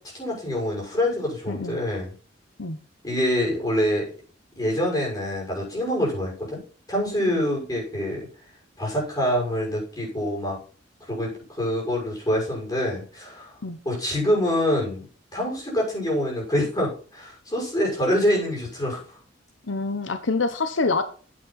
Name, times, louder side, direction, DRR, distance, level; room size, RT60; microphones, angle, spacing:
voice 1, 0.1-2.1 3.0-4.1 4.6-6.6 6.9-8.3 8.8-10.6 11.1-13.5 13.8-15.0 15.3-19.0, equal, 20° left, -2 dB, 6.2 m, -25 dB
voice 2, 1.5-1.8 2.6-2.8 7.3-7.4 13.6-13.8 19.7-21.0, left 3 dB, 85° left, 10 dB, 0.9 m, -26 dB
9.2 x 8.0 x 4.1 m, 0.40 s
head